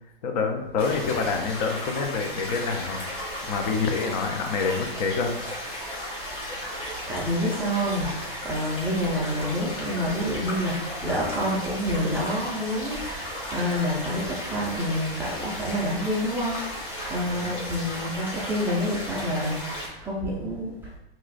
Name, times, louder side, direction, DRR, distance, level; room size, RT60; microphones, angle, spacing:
voice 1, 0.2-5.3 17.2-17.6, left 5 dB, 45° left, 4 dB, 0.5 m, -27 dB
sound 1, 0.8-19.9, equal, 15° left, 1.1 m, -35 dB
voice 2, 7.1-21.0, equal, 5° right, -7 dB, 0.4 m, -28 dB
3.0 x 2.5 x 3.9 m, 0.87 s
hypercardioid pair, 130°, 31 cm